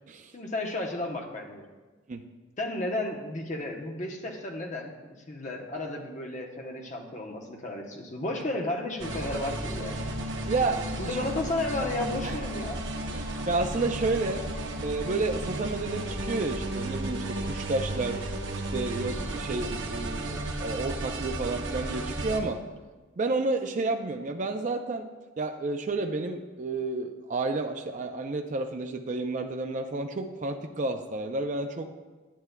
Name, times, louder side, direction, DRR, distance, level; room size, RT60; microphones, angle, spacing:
voice 1, 0.3-1.7 2.6-10.0 11.0-12.8, left 2 dB, 35° left, 1 dB, 0.8 m, -33 dB
sound 1, 9.0-22.4, right 1 dB, 65° right, 0.8 m, -34 dB
voice 2, 10.5-11.2 12.2-12.4 13.1-14.4 14.8-18.2 18.7-22.6 23.2-25.1 25.4-31.9, right 3 dB, 35° right, 5 dB, 0.4 m, -31 dB
10.0 x 9.3 x 2.2 m, 1.3 s
head